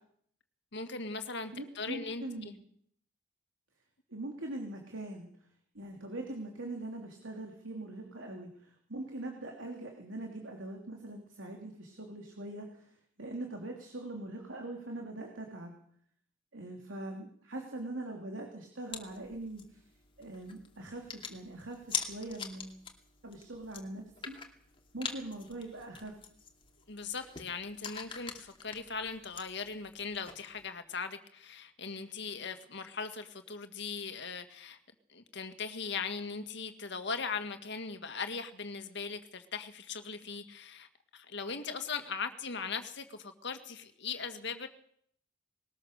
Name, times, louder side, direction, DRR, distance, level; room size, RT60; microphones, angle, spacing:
voice 1, 0.7-2.5 26.9-34.8 35.1-44.7, left 5 dB, 60° left, 8 dB, 2.1 m, -39 dB
voice 2, 1.5-2.6 4.1-5.5 5.7-15.8 16.5-19.8 20.2-22.8 23.2-24.4 24.9-26.2, right 2 dB, 75° right, 2 dB, 3.1 m, -42 dB
sound 1, 18.9-30.7, left 6 dB, 25° left, 2.6 m, -45 dB
20.5 x 19.5 x 6.7 m, 0.65 s
head